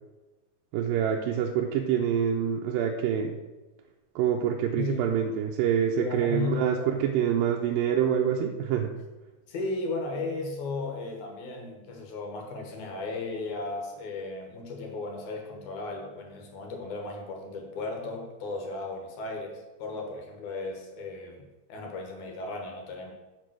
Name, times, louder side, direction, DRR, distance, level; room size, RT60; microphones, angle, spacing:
voice 1, 0.7-3.4 4.2-8.9, right 8 dB, 80° right, 1 dB, 2.2 m, -26 dB
voice 2, 4.7-5.1 6.0-6.9 9.5-21.4 21.7-23.1, left 3 dB, 65° left, 1 dB, 2.4 m, -35 dB
6.6 x 5.2 x 6.1 m, 1.1 s
omnidirectional pair, 4.3 m